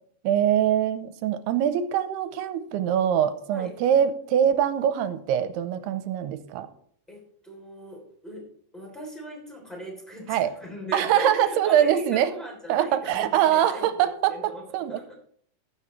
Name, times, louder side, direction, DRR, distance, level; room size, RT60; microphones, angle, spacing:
voice 1, 0.2-6.7 10.3-10.5 10.9-12.3 12.7-15.0, right 10 dB, 85° right, 11 dB, 2.7 m, -23 dB
voice 2, 7.1-8.4 8.7-15.1, equal, ahead, -1 dB, 2.3 m, -40 dB
15.0 x 10.5 x 3.2 m, 0.64 s
omnidirectional pair, 4.7 m